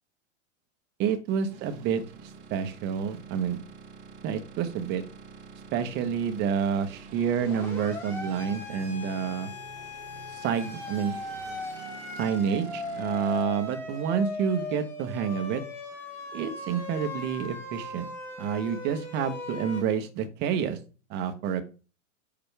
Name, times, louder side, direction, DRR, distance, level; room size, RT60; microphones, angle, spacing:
voice 1, 1.0-3.6 4.2-5.0 5.7-9.5 10.3-11.2 12.2-15.6 16.3-18.1 18.4-20.8 21.1-21.6, right 7 dB, 25° right, 8 dB, 1.1 m, -29 dB
sound 1, 1.5-13.5, right 5 dB, 45° right, 1.9 m, -48 dB
Siren, 7.4-19.8, left 2 dB, 5° left, 2.5 m, -38 dB
9.6 x 6.9 x 3.4 m, 0.36 s
supercardioid pair, 155°, 38 cm